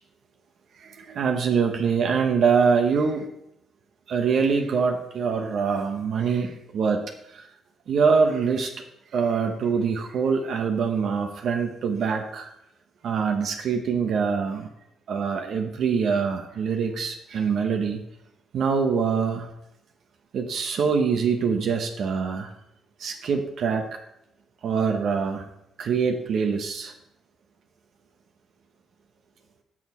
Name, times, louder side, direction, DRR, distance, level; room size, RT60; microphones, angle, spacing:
voice 1, 0.8-3.3 4.1-7.0 7.9-8.7 9.1-12.5 13.0-14.7 15.1-18.0 18.5-19.5 20.3-22.5 23.0-23.9 24.6-25.5 25.8-26.9, right 5 dB, 65° right, 3 dB, 0.9 m, -24 dB
7.6 x 6.1 x 4.4 m, 0.80 s
cardioid pair, 90°, 0 cm